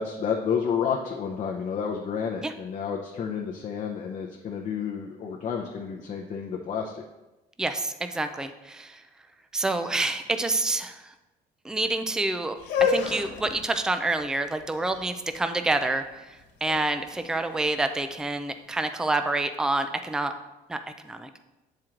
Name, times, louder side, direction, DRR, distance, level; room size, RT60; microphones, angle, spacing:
voice 1, 0.0-7.0, left 6 dB, 45° left, 0 dB, 0.7 m, -30 dB
voice 2, 7.6-9.0 9.5-11.1 11.6-20.3 20.7-21.4, right 2 dB, 5° right, 8 dB, 0.4 m, -28 dB
sound 1, 12.6-18.5, left 6 dB, 85° left, 1.3 m, -31 dB
7.5 x 4.5 x 3.7 m, 1.0 s
cardioid pair, 110°, 17 cm